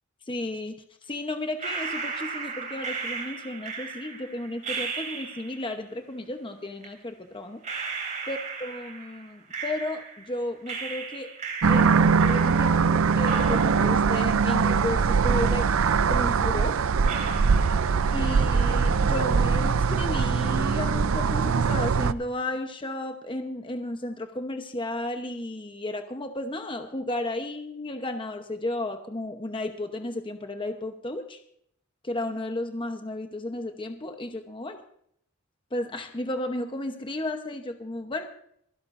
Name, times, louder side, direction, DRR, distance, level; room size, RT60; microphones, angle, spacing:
voice 1, 0.3-0.8 1.1-7.6 8.3-11.3 11.7-15.7 16.1-16.8 18.1-31.4 32.0-34.8 35.7-38.3, left 1 dB, 25° left, 6 dB, 0.9 m, -33 dB
sound 1, 1.6-5.7 6.8-6.9 7.6-10.3 10.7-12.9 13.2-15.3 15.6-15.7 16.4-16.5 17.0-18.4 18.6-19.2, right 5 dB, 35° right, 3.5 m, -36 dB
sound 2, 11.6-22.1, right 5 dB, 70° right, 0.5 m, -22 dB
27.0 x 11.5 x 2.6 m, 0.69 s
head